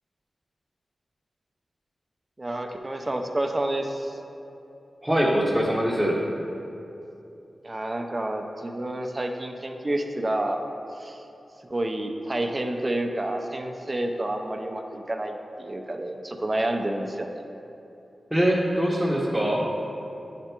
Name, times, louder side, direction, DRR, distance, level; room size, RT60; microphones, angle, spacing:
voice 1, 2.4-4.2 7.6-10.7 11.0-11.2 11.7-17.4, right 1 dB, 30° right, 4 dB, 0.6 m, -29 dB
voice 2, 5.0-6.2 18.3-19.6, equal, 15° right, -6 dB, 0.9 m, -23 dB
9.8 x 3.4 x 4.4 m, 2.8 s
cardioid pair, 55°, 0 cm